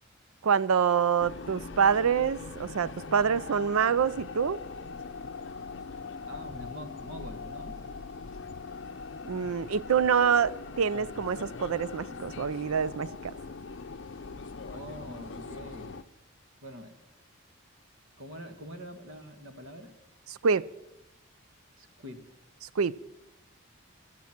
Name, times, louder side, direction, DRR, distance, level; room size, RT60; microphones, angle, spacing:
voice 1, 0.4-4.6 9.3-13.3 20.4-20.7 22.8-23.0, right 6 dB, 90° right, 0.5 m, -26 dB
sound 1, 1.2-16.0, left 4 dB, 55° left, 0.6 m, -41 dB
voice 2, 6.3-7.8 14.7-16.0 16.6-16.9 18.2-19.9 21.8-22.2, equal, 70° right, 1.7 m, -44 dB
18.5 x 13.0 x 5.9 m
head